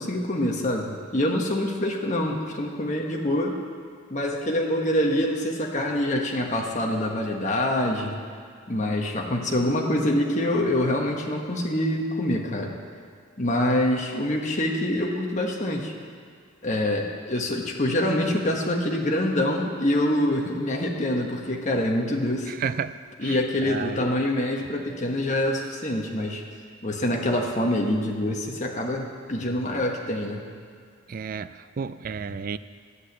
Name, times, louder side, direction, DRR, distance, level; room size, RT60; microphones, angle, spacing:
voice 1, 0.0-3.6 4.1-8.1 8.7-12.7 13.4-15.9 16.6-22.5 23.2-26.4 26.8-30.4, left 1 dB, 35° left, 0 dB, 1.4 m, -25 dB
voice 2, 22.5-22.9 23.2-24.0 31.1-32.6, right 6 dB, 40° right, 14 dB, 0.3 m, -32 dB
11.5 x 8.1 x 8.3 m, 2.1 s
head